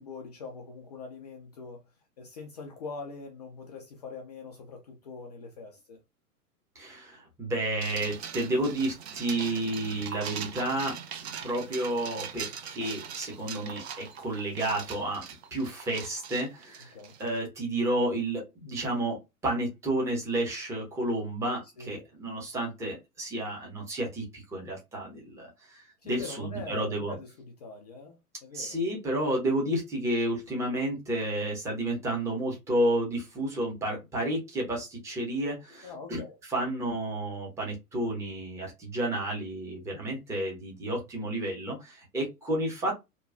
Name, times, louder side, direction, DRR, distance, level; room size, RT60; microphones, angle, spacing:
voice 1, 0.0-6.0 16.9-17.2 21.8-22.1 26.0-28.8 35.8-36.4, left 4 dB, 30° left, 0.4 m, -43 dB
voice 2, 6.7-11.0 11.4-15.2 15.5-19.2 19.4-27.1 28.5-36.2 36.5-42.9, right 1 dB, 5° right, 0.7 m, -31 dB
sound 1, 7.8-17.4, right 7 dB, 45° right, 0.5 m, -41 dB
2.9 x 2.3 x 2.4 m
figure-of-eight pair, 105°, 45 cm